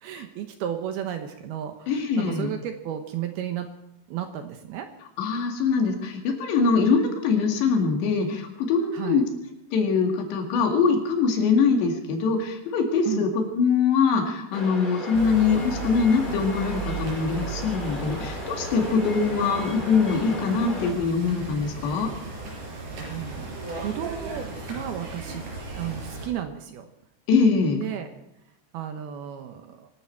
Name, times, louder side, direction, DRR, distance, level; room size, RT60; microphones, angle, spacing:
voice 1, 0.0-3.7 4.1-4.9 8.9-9.2 13.1-13.2 23.0-23.5 23.8-25.5 25.8-26.9 27.8-28.1 28.7-29.9, right 10 dB, 70° right, 6 dB, 2.6 m, -33 dB
voice 2, 1.9-2.5 5.2-9.3 9.7-22.1 27.3-27.8, left 5 dB, 70° left, 3 dB, 4.2 m, -23 dB
sound 1, 14.5-20.9, left 1 dB, 15° left, 2.0 m, -36 dB
sound 2, 15.1-26.3, right 3 dB, 45° right, 6.3 m, -36 dB
25.5 x 12.0 x 4.5 m, 0.84 s
omnidirectional pair, 5.2 m